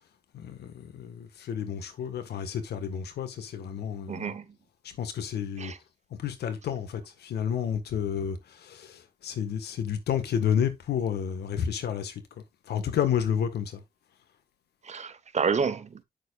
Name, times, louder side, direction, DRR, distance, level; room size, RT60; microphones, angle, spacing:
voice 1, 0.3-4.3 5.0-5.7 6.1-12.2 12.7-13.8, left 8 dB, 90° left, 1.6 m, -30 dB
voice 2, 4.1-4.6 5.6-5.8 14.8-16.0, right 5 dB, 45° right, 1.1 m, -29 dB
9.3 x 6.8 x 2.5 m
cardioid pair, 95°, 16 cm